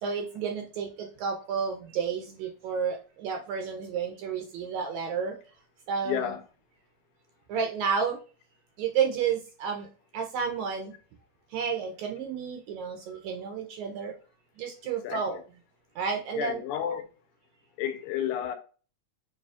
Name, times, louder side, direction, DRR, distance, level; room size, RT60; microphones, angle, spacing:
voice 1, 0.0-5.4 5.9-6.3 7.5-8.2 8.8-9.9 10.1-10.9 11.5-14.1 14.6-15.4 15.9-16.6, right 6 dB, 75° right, 1.7 m, -31 dB
voice 2, 6.0-6.4 15.0-15.4 16.4-17.0 17.8-18.6, left 10 dB, 85° left, 2.0 m, -31 dB
6.6 x 2.7 x 2.3 m
omnidirectional pair, 3.6 m